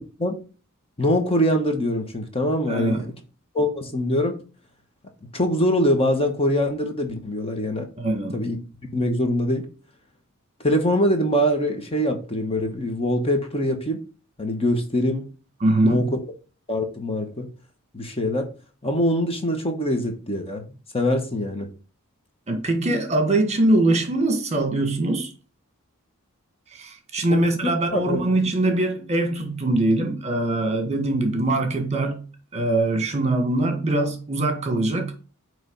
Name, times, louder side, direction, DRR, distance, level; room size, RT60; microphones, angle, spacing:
voice 1, 1.0-3.1 3.5-4.4 5.3-7.9 8.3-8.6 8.9-9.7 10.6-14.0 14.4-15.3 15.8-16.1 16.7-17.5 17.9-18.5 18.8-20.7 20.9-21.7 27.3-28.3, equal, 25° left, 1.2 m, -23 dB
voice 2, 2.7-3.1 8.0-8.4 15.6-16.1 22.5-25.3 26.7-32.2 32.5-35.1, right 2 dB, 30° right, 1.5 m, -22 dB
8.7 x 3.3 x 5.2 m
head